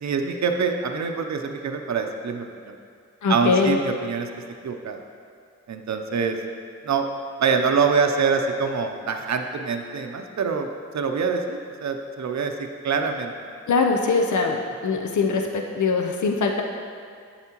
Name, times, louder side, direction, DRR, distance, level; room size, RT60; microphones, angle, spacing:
voice 1, 0.0-2.8 3.3-4.3 4.6-5.0 5.7-6.4 6.8-7.1 7.4-10.7 10.9-13.3, right 5 dB, 65° right, 5 dB, 0.6 m, -25 dB
voice 2, 3.2-3.8 13.7-14.6 14.8-16.6, left 4 dB, 80° left, 2 dB, 0.6 m, -22 dB
8.1 x 7.9 x 2.9 m, 2.2 s
cardioid pair, 50°, 29 cm